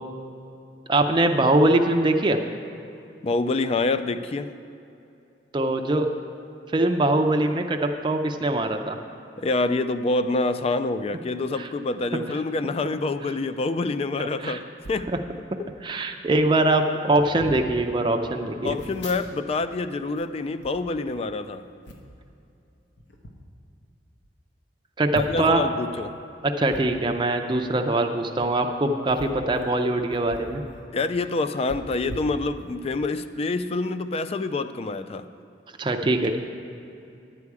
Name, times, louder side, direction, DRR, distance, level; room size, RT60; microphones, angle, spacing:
voice 1, 0.9-2.4 5.5-6.1 6.7-9.0 11.6-11.7 14.4-14.6 15.1-15.2 15.8-18.8 25.0-25.6 26.4-30.6 35.8-36.4, right 2 dB, 25° right, 4 dB, 0.5 m, -22 dB
voice 2, 3.2-4.5 9.4-14.6 14.9-15.1 15.6-15.7 18.6-21.6 25.1-26.1 30.9-35.3, left 3 dB, 35° left, 12 dB, 0.3 m, -26 dB
sound 1, 14.8-15.1 15.9-16.0 16.2-16.5 17.1-17.7 18.6-19.7 20.0-21.4 21.8-22.2 23.0-23.3 23.9-24.0 24.2-24.3 25.1-25.6 26.7-26.8 28.3-28.5 29.0-30.6 30.9-31.0 31.7-32.9 33.4-33.5, equal, 70° left, 1.0 m, -41 dB
11.0 x 8.3 x 4.8 m, 2.7 s
head